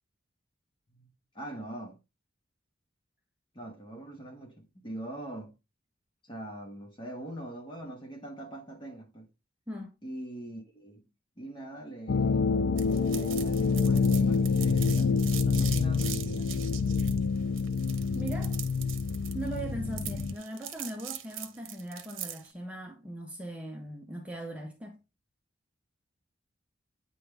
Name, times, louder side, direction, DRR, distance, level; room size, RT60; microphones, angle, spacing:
voice 1, 1.3-2.0 3.5-5.5 6.2-9.3 10.0-11.1 11.4-12.6 13.1-16.5, right 1 dB, 25° left, 1.7 m, -42 dB
sound 1, 12.1-20.3, left 5 dB, 55° left, 0.5 m, -27 dB
sound 2, 12.8-22.5, right 11 dB, 80° right, 0.9 m, -41 dB
voice 2, 18.1-18.6 19.3-25.0, right 1 dB, 5° right, 1.1 m, -39 dB
9.2 x 3.9 x 3.4 m
head